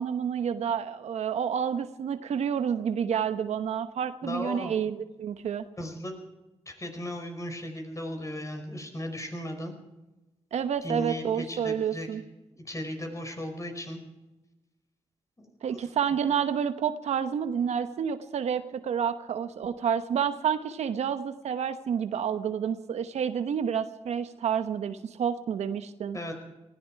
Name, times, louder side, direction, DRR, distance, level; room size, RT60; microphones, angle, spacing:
voice 1, 0.0-5.6 10.5-12.2 15.6-26.2, right 8 dB, 80° right, 10 dB, 1.0 m, -29 dB
voice 2, 4.2-4.7 5.8-6.1 6.6-9.7 10.8-12.2 12.5-14.0 15.4-15.9 26.1-26.3, left 1 dB, 30° left, 5 dB, 4.9 m, -36 dB
19.5 x 16.0 x 4.7 m, 1.0 s
cardioid pair, 55°, 11 cm